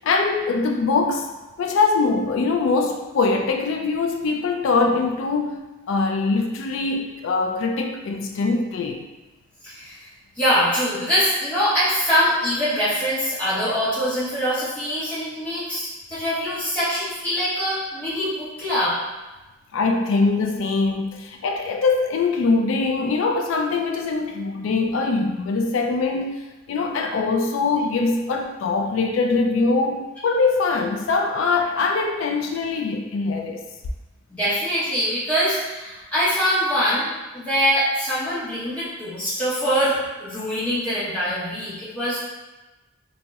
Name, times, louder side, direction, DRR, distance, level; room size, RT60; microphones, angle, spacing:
voice 1, 0.0-1.3 1.6-5.6 5.9-9.1 19.7-33.6, left 3 dB, 65° left, 3 dB, 0.3 m, -22 dB
voice 2, 9.6-10.1 10.4-18.9 34.3-37.1 37.3-42.2, equal, 5° left, -12 dB, 1.0 m, -23 dB
2.8 x 2.0 x 3.4 m, 1.1 s
head